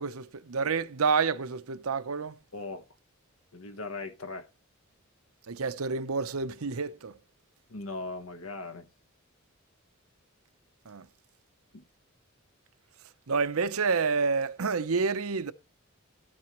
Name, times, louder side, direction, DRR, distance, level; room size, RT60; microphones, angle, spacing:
voice 1, 0.0-2.4 5.5-7.1 10.9-11.1 13.3-15.5, right 5 dB, 90° right, 0.7 m, -29 dB
voice 2, 2.5-2.8 3.5-4.4 7.7-8.9 11.7-11.8, left 3 dB, 80° left, 1.2 m, -39 dB
12.5 x 9.0 x 3.0 m
head